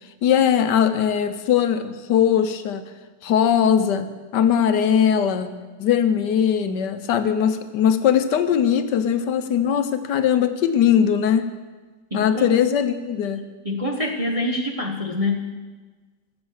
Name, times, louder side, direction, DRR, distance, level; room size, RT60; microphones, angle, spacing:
voice 1, 0.2-2.8 3.2-5.5 5.8-11.5 12.1-13.4, left 8 dB, 75° left, 10 dB, 1.4 m, -20 dB
voice 2, 12.1-12.6 13.6-15.5, left 2 dB, 30° right, 0 dB, 0.7 m, -25 dB
16.0 x 7.4 x 6.4 m, 1.3 s
omnidirectional pair, 1.9 m